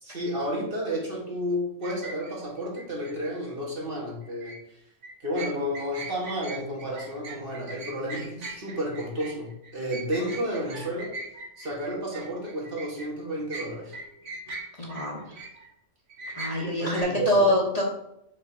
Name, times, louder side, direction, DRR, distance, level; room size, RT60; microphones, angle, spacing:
voice 1, 0.0-4.6 5.2-11.1 11.6-14.0 16.6-17.5, equal, 45° right, -3 dB, 1.7 m, -31 dB
sound 1, 1.8-3.1 4.2-4.6 5.0-13.1 13.5-15.7 16.1-17.0, right 3 dB, 70° right, 1.4 m, -40 dB
voice 2, 14.8-15.2 16.4-17.8, left 1 dB, 30° left, -2 dB, 1.1 m, -24 dB
5.3 x 3.6 x 5.4 m, 0.80 s
omnidirectional pair, 1.3 m